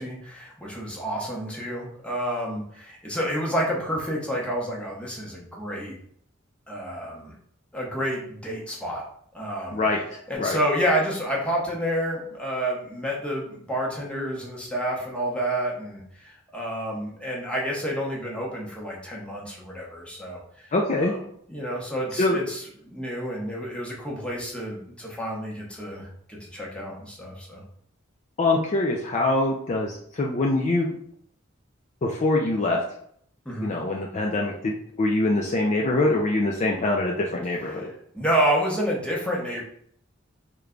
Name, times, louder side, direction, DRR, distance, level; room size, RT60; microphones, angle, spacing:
voice 1, 0.0-5.9 6.7-7.3 7.7-9.0 9.3-9.8 10.3-21.2 21.5-27.6 33.4-33.7 37.5-39.6, equal, 5° left, -3 dB, 0.8 m, -29 dB
voice 2, 20.7-21.1 22.2-22.4 28.4-30.9 32.0-32.8 33.6-37.9, left 2 dB, 35° left, -1 dB, 0.4 m, -24 dB
3.2 x 2.3 x 3.7 m, 0.65 s
head